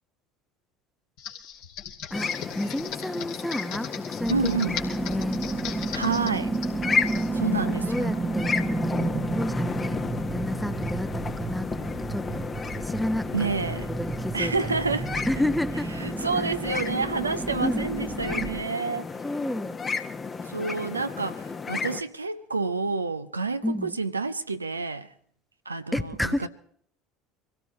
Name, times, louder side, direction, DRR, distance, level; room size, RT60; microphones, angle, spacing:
Computer keyboard, 1.2-7.3, left 8 dB, 55° left, 2.3 m, -38 dB
sound 1, 2.1-22.0, left 5 dB, 25° left, 1.2 m, -33 dB
voice 1, 2.1-5.4 7.9-8.6 8.9-10.0 10.3-12.5 12.8-13.5 14.0-14.7 15.3-15.9 16.4-16.5 17.6-17.9 19.2-19.8 23.6-24.0 25.9-26.5, left 1 dB, 5° left, 1.0 m, -31 dB
sound 2, 4.2-18.6, right 3 dB, 20° right, 1.0 m, -32 dB
voice 2, 4.3-4.7 5.9-6.5 7.3-8.1 13.3-13.9 14.3-15.3 16.0-19.1 20.4-25.1 25.7-26.5, right 4 dB, 85° right, 0.6 m, -29 dB
24.5 x 16.5 x 3.2 m
figure-of-eight pair, 65°, 0 cm